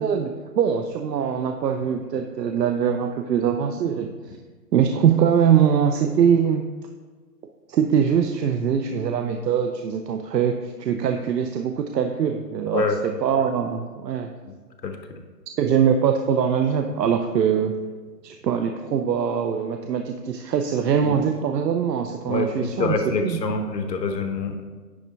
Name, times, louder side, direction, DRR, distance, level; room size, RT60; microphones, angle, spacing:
voice 1, 0.0-4.1 4.7-6.6 7.7-14.3 15.6-17.8 18.2-22.9 23.2-23.4, right 8 dB, 80° right, 5 dB, 0.6 m, -22 dB
voice 2, 12.7-13.0 14.5-14.6 14.8-15.0 21.0-21.1 22.3-24.6, left 4 dB, 80° left, 6 dB, 1.0 m, -25 dB
9.8 x 3.4 x 4.0 m, 1.4 s
hypercardioid pair, 170°, 49 cm